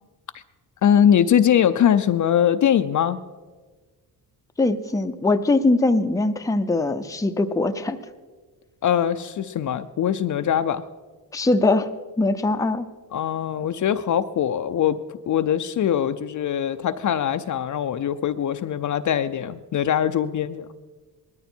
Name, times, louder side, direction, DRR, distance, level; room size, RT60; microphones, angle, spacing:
voice 1, 0.8-3.2 8.8-10.8 13.1-15.0 15.3-20.7, left 9 dB, 50° left, 10 dB, 0.6 m, -22 dB
voice 2, 4.6-8.0 11.3-11.9 12.2-12.8, left 2 dB, 10° left, 7 dB, 0.6 m, -21 dB
19.5 x 13.5 x 4.5 m, 1.4 s
cardioid pair, 120°, 40 cm